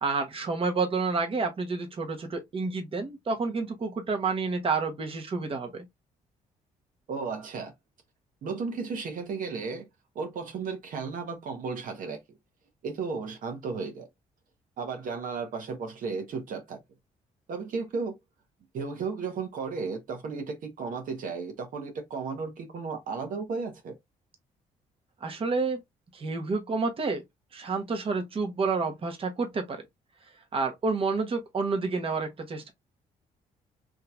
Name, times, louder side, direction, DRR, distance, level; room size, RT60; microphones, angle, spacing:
voice 1, 0.0-5.8 25.2-25.8 26.1-27.2 27.5-29.8 30.5-32.7, right 4 dB, 40° right, 1.0 m, -29 dB
voice 2, 7.1-7.7 8.4-9.9 10.1-12.2 12.8-14.1 14.8-16.8 17.5-18.2 18.7-24.0, right 4 dB, 65° right, 1.0 m, -34 dB
3.6 x 2.9 x 2.3 m
cardioid pair, 80°, 15 cm